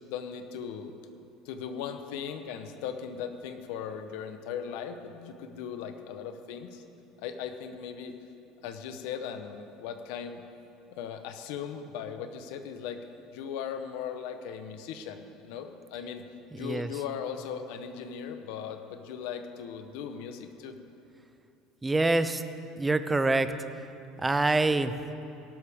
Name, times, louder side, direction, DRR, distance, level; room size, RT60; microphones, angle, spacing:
voice 1, 0.1-0.9 1.4-6.8 7.2-8.2 8.6-10.4 10.9-13.0 13.3-16.2 16.5-20.7, left 7 dB, 70° left, 7 dB, 0.8 m, -38 dB
voice 2, 16.5-16.9 21.8-22.4 22.8-23.5 24.2-25.0, right 2 dB, 10° right, 11 dB, 0.4 m, -25 dB
17.5 x 12.0 x 3.5 m, 2.7 s
cardioid pair, 175°, 0 cm